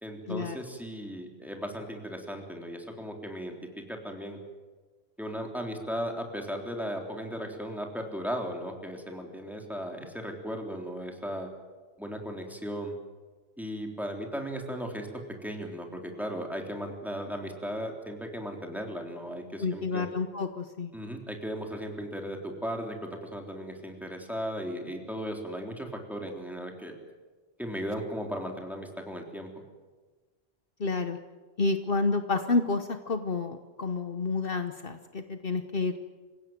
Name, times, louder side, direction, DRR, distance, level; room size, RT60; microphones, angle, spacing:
voice 1, 0.0-3.5 3.9-4.4 5.2-11.5 12.0-13.0 13.6-15.1 15.4-20.1 20.9-27.0 27.6-29.5, equal, ahead, 2 dB, 3.5 m, -36 dB
voice 2, 19.6-20.9 30.8-31.2 31.6-36.0, left 3 dB, 60° left, 8 dB, 1.2 m, -29 dB
27.0 x 16.5 x 9.3 m, 1.3 s
omnidirectional pair, 1.1 m